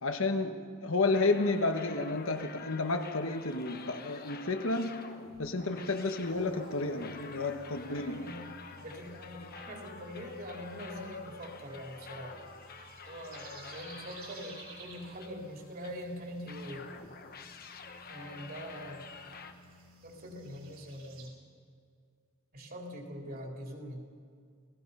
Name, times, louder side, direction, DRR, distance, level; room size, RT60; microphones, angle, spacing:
voice 1, 0.0-5.1 5.4-8.3, left 3 dB, 60° left, 6 dB, 1.3 m, -31 dB
sound 1, 1.1-16.0 16.5-19.5, left 5 dB, 45° left, 1.2 m, -49 dB
sound 2, 6.2-21.3, right 3 dB, 70° right, 5.4 m, -55 dB
voice 2, 7.8-8.4 8.8-12.5 13.1-16.8 18.1-19.1 20.0-21.3 22.5-24.0, equal, 40° right, 1 dB, 3.5 m, -43 dB
29.5 x 18.0 x 5.6 m, 2.1 s
head